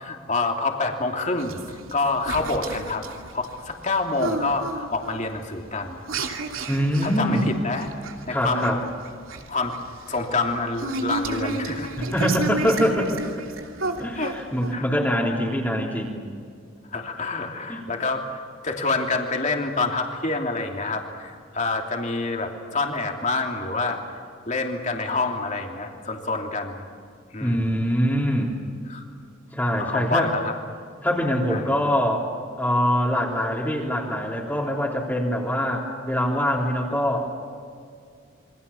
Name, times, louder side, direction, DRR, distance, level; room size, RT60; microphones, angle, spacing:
voice 1, 0.0-3.0 3.3-6.0 7.0-7.9 8.3-8.8 9.5-9.8 10.1-12.3 14.1-14.4 14.7-14.8 16.9-24.0 24.5-26.9 27.3-27.7 28.9-29.0 29.8-30.5 31.5-31.6, left 3 dB, 35° left, 2 dB, 3.0 m, -27 dB
sound 1, 1.4-14.7, right 3 dB, 80° right, 2.7 m, -32 dB
voice 2, 6.7-7.5 8.3-8.8 12.0-13.2 14.0-16.2 17.7-17.8 27.4-28.6 29.5-30.3 31.0-32.3 32.6-37.3, equal, 10° left, -3 dB, 3.4 m, -24 dB
28.0 x 24.5 x 7.1 m, 2.2 s
head